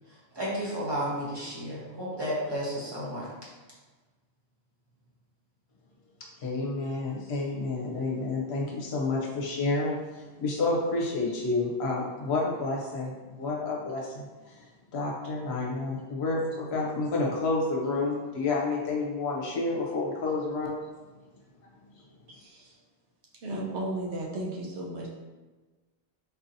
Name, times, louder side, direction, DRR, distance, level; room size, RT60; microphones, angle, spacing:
voice 1, 0.3-3.3, equal, 25° right, -7 dB, 1.0 m, -32 dB
voice 2, 6.4-14.5 14.9-20.8, left 3 dB, 70° left, -2 dB, 0.9 m, -30 dB
voice 3, 22.3-22.8 23.4-25.1, right 1 dB, 75° right, -2 dB, 1.0 m, -35 dB
4.2 x 2.7 x 2.6 m, 1.3 s
omnidirectional pair, 1.1 m